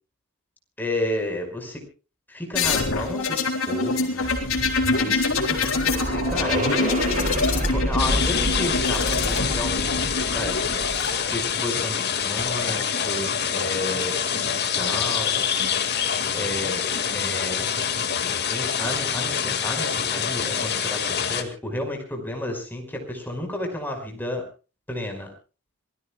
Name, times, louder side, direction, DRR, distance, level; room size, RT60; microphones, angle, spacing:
voice 1, 0.8-1.8 2.3-4.3 4.9-6.6 7.5-10.5 11.3-15.4 16.3-16.9 17.1-17.7 18.5-24.4 24.9-25.3, left 1 dB, 10° left, 2 dB, 5.2 m, -32 dB
sound 1, 2.5-11.1 12.2-12.8, left 3 dB, 70° left, 4.1 m, -25 dB
sound 2, 5.0-11.3, equal, 35° right, 4.5 m, -29 dB
sound 3, 8.0-21.4, left 7 dB, 50° left, 2.0 m, -26 dB
27.0 x 20.0 x 2.3 m, 0.35 s
head